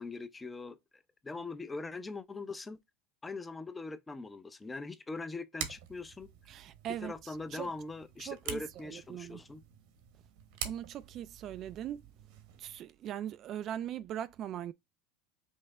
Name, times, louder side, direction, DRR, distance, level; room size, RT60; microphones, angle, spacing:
voice 1, 0.0-2.8 3.2-6.3 7.0-9.6, left 3 dB, 15° left, 0.5 m, -42 dB
sound 1, 5.6-12.8, right 9 dB, 70° right, 1.1 m, -46 dB
voice 2, 6.5-7.7 8.2-9.4 10.6-12.0 12.6-14.7, right 11 dB, 45° right, 0.3 m, -40 dB
5.5 x 2.1 x 3.5 m
supercardioid pair, 110°, 0 cm